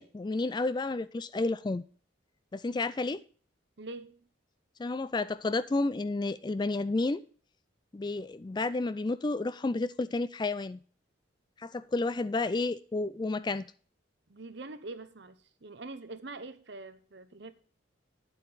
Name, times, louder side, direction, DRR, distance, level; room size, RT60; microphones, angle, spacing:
voice 1, 0.0-1.8 2.5-3.2 4.8-7.2 7.9-10.8 11.6-13.7, left 3 dB, 20° left, 0.3 m, -31 dB
voice 2, 3.8-4.2 14.3-17.5, right 2 dB, 60° right, 0.9 m, -44 dB
9.8 x 8.2 x 4.0 m
head